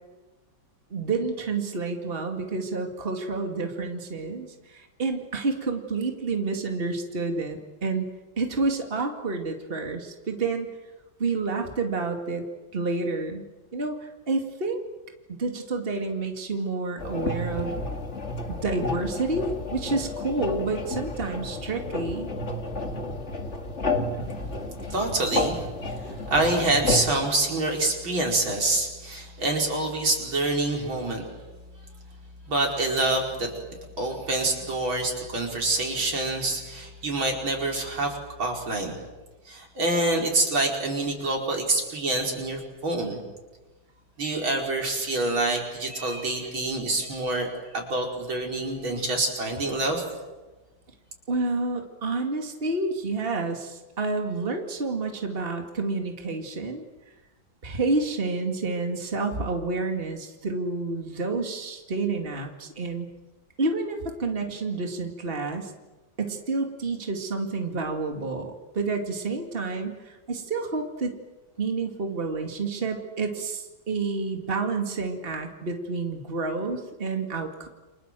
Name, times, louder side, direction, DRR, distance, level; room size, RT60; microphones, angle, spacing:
voice 1, 0.9-8.1 8.4-10.7 11.2-12.4 12.7-13.5 13.7-14.8 15.4-17.8 18.6-22.3 51.3-56.8 57.6-63.1 63.6-65.7 66.2-71.2 71.6-77.7, right 3 dB, 30° right, 4 dB, 2.5 m, -29 dB
sound 1, 17.0-27.3, left 2 dB, 35° left, 2.4 m, -31 dB
voice 2, 24.9-31.2 32.5-33.5 34.0-39.0 39.5-43.2 44.2-47.5 47.7-50.0, right 2 dB, 85° right, 1 dB, 5.6 m, -26 dB
29.5 x 26.0 x 7.6 m, 1.2 s
omnidirectional pair, 2.1 m